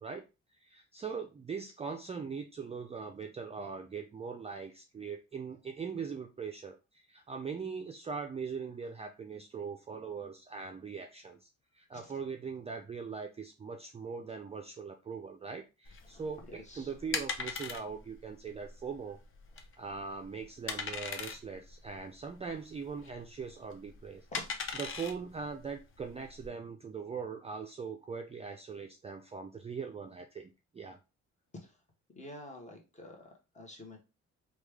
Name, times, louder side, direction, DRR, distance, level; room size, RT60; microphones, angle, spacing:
voice 1, 0.6-11.5 11.7-19.2 19.8-24.3 24.7-31.0, right 5 dB, 20° right, 4 dB, 0.3 m, -41 dB
sound 1, 15.9-26.5, left 5 dB, 45° left, 0.6 m, -41 dB
voice 2, 16.5-16.9 24.3-24.4 31.6-31.7 32.1-34.0, left 1 dB, 25° left, 1 dB, 1.0 m, -48 dB
3.1 x 2.3 x 3.3 m, 0.29 s
cardioid pair, 90°, 30 cm